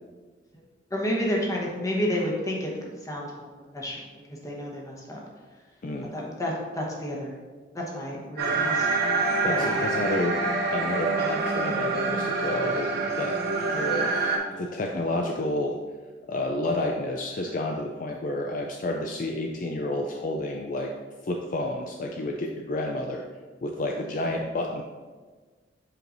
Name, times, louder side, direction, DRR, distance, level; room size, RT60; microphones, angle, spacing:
voice 1, 0.9-3.5 3.7-5.2 6.0-7.4 7.7-8.9 9.5-9.9, equal, 20° left, -3 dB, 1.1 m, -30 dB
sound 1, 8.4-14.4, right 3 dB, 55° right, 1.0 m, -26 dB
voice 2, 9.4-10.4 10.7-12.9 13.2-13.4 13.7-14.1 14.5-15.8 16.3-20.9 21.2-23.2 23.6-24.8, left 1 dB, 45° left, 1 dB, 0.4 m, -30 dB
7.5 x 4.8 x 2.6 m, 1.4 s
head